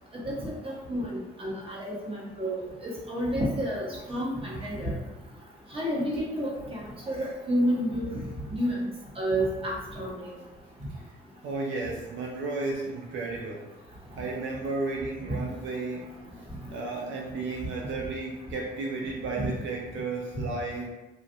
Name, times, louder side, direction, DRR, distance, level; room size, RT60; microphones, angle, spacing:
voice 1, 0.1-5.0 5.7-6.8 7.1-8.2 8.5-8.8 9.2-10.3 15.3-15.4, equal, 30° right, -4 dB, 1.1 m, -30 dB
voice 2, 11.4-13.7 14.2-16.1 16.7-20.9, right 3 dB, 75° right, -1 dB, 0.5 m, -33 dB
3.4 x 2.4 x 2.7 m, 1.1 s
cardioid pair, 90°, 20 cm